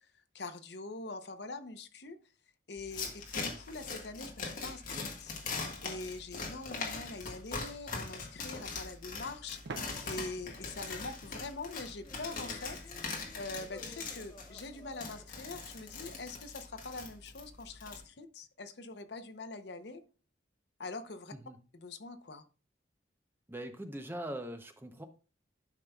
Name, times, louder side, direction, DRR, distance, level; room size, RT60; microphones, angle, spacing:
voice 1, 0.3-2.2 2.7-5.3 5.8-12.8 13.3-20.0 20.8-21.3 21.7-22.4, left 3 dB, 65° left, 10 dB, 0.7 m, -44 dB
sound 1, 2.8-18.0, left 4 dB, 45° left, 1.6 m, -42 dB
sound 2, 9.6-12.3, right 4 dB, 70° right, 0.7 m, -49 dB
sound 3, 12.0-16.6, left 1 dB, 20° left, 0.8 m, -55 dB
voice 2, 23.5-25.0, right 1 dB, 10° right, 6 dB, 0.6 m, -41 dB
12.0 x 5.4 x 2.3 m, 0.35 s
head